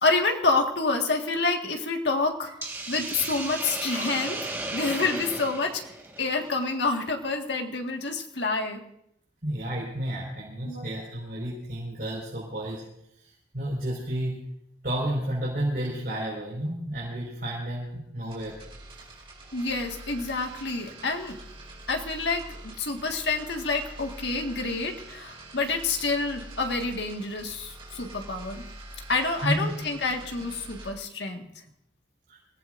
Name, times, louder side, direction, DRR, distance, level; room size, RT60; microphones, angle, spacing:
voice 1, 0.0-5.8 6.2-8.8 10.6-11.0 19.5-21.4 21.9-28.6 29.1-31.4, left 3 dB, 70° left, 3 dB, 1.8 m, -28 dB
Hiss, 2.6-6.9, right 2 dB, 15° right, 1.6 m, -35 dB
voice 2, 9.4-12.8 13.5-14.3 14.8-18.5 29.4-29.7 32.3-32.4, right 1 dB, 50° right, -5 dB, 5.1 m, -31 dB
sound 1, 18.2-30.9, right 1 dB, 30° right, 4.5 m, -45 dB
25.5 x 17.0 x 2.6 m, 0.78 s
head